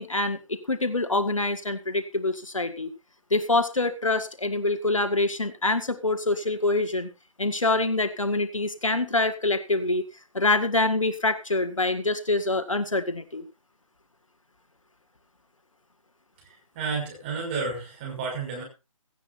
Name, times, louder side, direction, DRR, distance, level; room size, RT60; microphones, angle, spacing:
voice 1, 0.0-2.9 3.3-7.1 7.4-10.0 10.3-13.4, left 2 dB, 70° left, 10 dB, 1.9 m, -25 dB
voice 2, 16.4-18.6, right 4 dB, 20° right, 0 dB, 6.1 m, -32 dB
17.5 x 15.0 x 2.6 m, 0.28 s
figure-of-eight pair, 150°, 17 cm